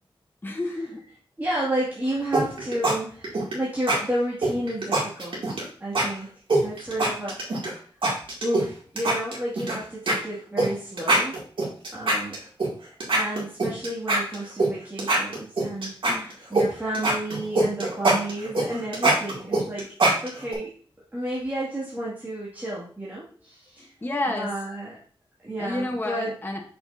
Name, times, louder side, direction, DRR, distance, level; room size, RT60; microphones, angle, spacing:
voice 1, 0.4-1.0 16.1-16.4 23.8-24.5 25.6-26.6, left 2 dB, 20° left, 2 dB, 1.0 m, -30 dB
voice 2, 1.4-6.3 6.6-7.8 8.4-11.4 11.9-12.4 13.2-19.9 20.2-20.8 21.1-23.9 24.3-25.0 25.4-26.3, right 1 dB, 20° right, -8 dB, 2.2 m, -31 dB
sound 1, 2.3-2.9 3.2-3.5 3.9-4.0 4.4-5.6 5.9-6.1 6.5-7.7 8.0-8.6 9.0-9.7 10.1-10.2 10.6-10.7 11.0-12.7 13.0-14.7 15.0-16.7 16.9-20.5, right 2 dB, 65° right, 2.4 m, -22 dB
6.8 x 6.1 x 2.7 m, 0.44 s
wide cardioid pair, 110°, 9 cm